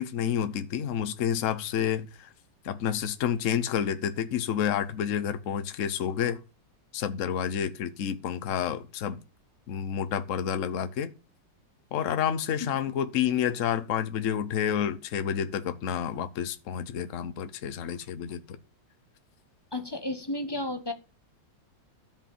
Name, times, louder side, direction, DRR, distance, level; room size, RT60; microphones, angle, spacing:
voice 1, 0.0-2.3 2.6-6.4 6.9-9.2 9.7-11.1 11.9-18.4, left 9 dB, 50° left, 1.1 m, -29 dB
voice 2, 19.7-20.9, left 2 dB, 15° left, 1.0 m, -32 dB
13.0 x 5.5 x 7.4 m
omnidirectional pair, 2.0 m